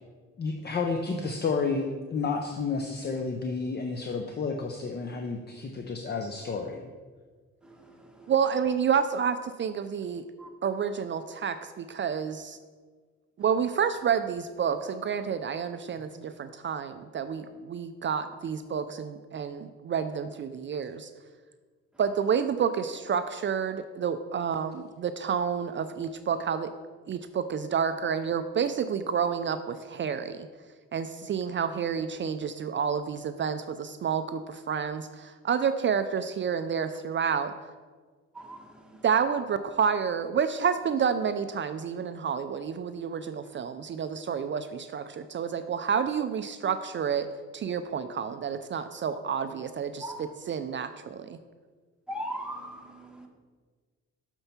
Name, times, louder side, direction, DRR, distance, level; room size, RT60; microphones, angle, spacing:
voice 1, 0.4-6.8, left 4 dB, 35° left, 4 dB, 0.6 m, -31 dB
voice 2, 8.3-10.2 10.6-12.6 13.4-21.1 22.0-26.7 27.1-30.5 30.9-37.5 39.0-47.3 47.5-51.4, right 7 dB, 40° right, 10 dB, 0.4 m, -29 dB
voice 3, 52.1-53.3, equal, 5° right, 1 dB, 1.2 m, -38 dB
6.6 x 4.5 x 5.8 m, 1.5 s
cardioid pair, 90°, 30 cm